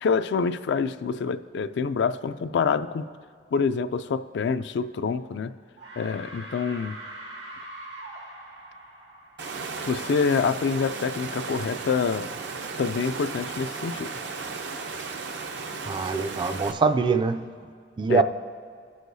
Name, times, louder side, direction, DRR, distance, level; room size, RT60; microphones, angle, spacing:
voice 1, 0.0-3.1 3.5-5.5 6.0-6.9 9.9-12.3 12.8-14.1 18.1-18.2, left 5 dB, 70° left, 11 dB, 0.3 m, -26 dB
sound 1, 5.1-5.5 5.8-10.4, right 1 dB, 90° right, 1.6 m, -43 dB
Water, 9.4-16.7, right 4 dB, 70° right, 0.6 m, -35 dB
voice 2, 15.9-17.5 18.0-18.2, right 4 dB, 25° right, 9 dB, 0.3 m, -23 dB
18.0 x 6.4 x 2.7 m, 2.1 s
head